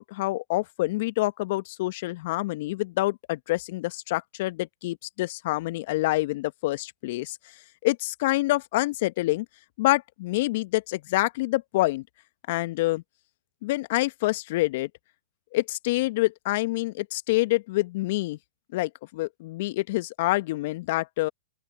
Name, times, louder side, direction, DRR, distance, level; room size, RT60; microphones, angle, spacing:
voice 1, 0.0-7.4 7.8-9.4 9.8-12.0 12.5-13.0 13.6-14.9 15.5-18.4 18.7-21.3, left 19 dB, 50° left, 1.4 m, -27 dB
open air
figure-of-eight pair, 110°, 0 cm